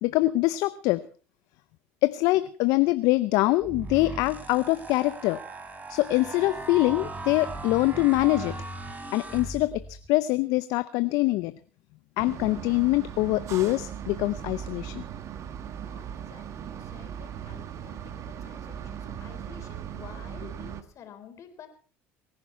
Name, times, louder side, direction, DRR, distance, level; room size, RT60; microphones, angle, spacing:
voice 1, 0.0-1.0 2.0-5.4 5.9-8.6 9.1-11.5 12.2-15.0, left 19 dB, 70° left, 14 dB, 0.6 m, -24 dB
sound 1, 3.6-10.1, right 2 dB, 25° right, 3.5 m, -38 dB
sound 2, 12.2-20.8, right 9 dB, 50° right, 1.5 m, -38 dB
voice 2, 15.8-21.7, left 8 dB, 50° left, 6 dB, 3.8 m, -50 dB
23.0 x 10.5 x 4.6 m, 0.41 s
hypercardioid pair, 75°, 6 cm